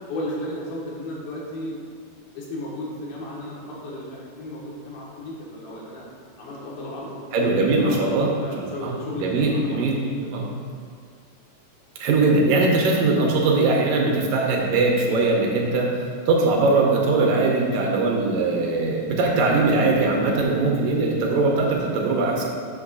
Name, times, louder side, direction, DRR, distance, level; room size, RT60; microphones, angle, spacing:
voice 1, 0.0-1.8 2.3-6.1 6.4-8.1 8.4-10.6, left 1 dB, 80° left, -4 dB, 3.1 m, -34 dB
voice 2, 7.3-8.3 8.6-10.0 10.3-10.5 12.0-22.5, right 3 dB, 75° right, 0 dB, 2.3 m, -21 dB
8.3 x 3.0 x 6.1 m, 2.1 s
omnidirectional pair, 4.2 m